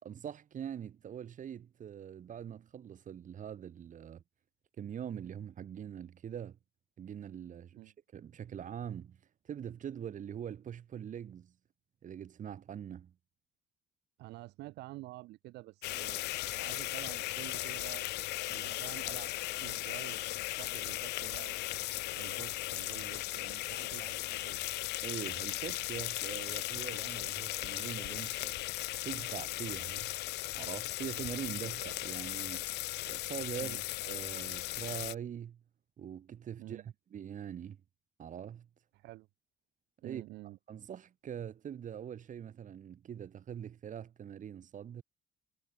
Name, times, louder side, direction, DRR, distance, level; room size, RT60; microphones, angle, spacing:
voice 1, 0.0-4.2 4.8-6.6 7.0-9.2 9.5-11.5 12.0-13.1 23.8-23.9 25.0-28.6 29.0-30.1 30.5-32.7 33.0-33.8 34.0-35.6 36.0-36.8 37.1-37.8 38.2-38.7 40.0-40.2 40.7-45.0, right 9 dB, 50° right, 4.4 m, -43 dB
voice 2, 14.2-18.1 18.5-19.3 19.6-21.6 22.2-24.6 33.6-33.8 36.6-36.9 38.9-39.3 40.0-40.6, right 19 dB, 85° right, 1.8 m, -49 dB
sound 1, 15.8-35.1, left 18 dB, 80° left, 0.8 m, -37 dB
cardioid pair, 110°, 17 cm